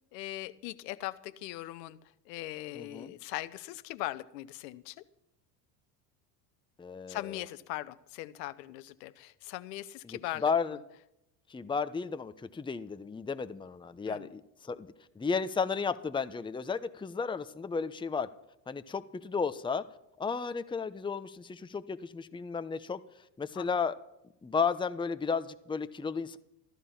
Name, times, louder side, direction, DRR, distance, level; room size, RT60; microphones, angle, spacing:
voice 1, 0.1-2.0 2.3-5.0 7.1-10.8 14.1-14.3 23.5-23.7, left 16 dB, 75° left, 14 dB, 0.9 m, -40 dB
voice 2, 2.8-3.1 6.8-7.2 10.1-10.8 11.5-18.3 18.7-19.8 20.2-23.0 23.4-23.9 24.4-26.4, left 5 dB, 10° left, 12 dB, 0.8 m, -33 dB
14.5 x 13.0 x 5.8 m, 0.84 s
hypercardioid pair, 80°, 49 cm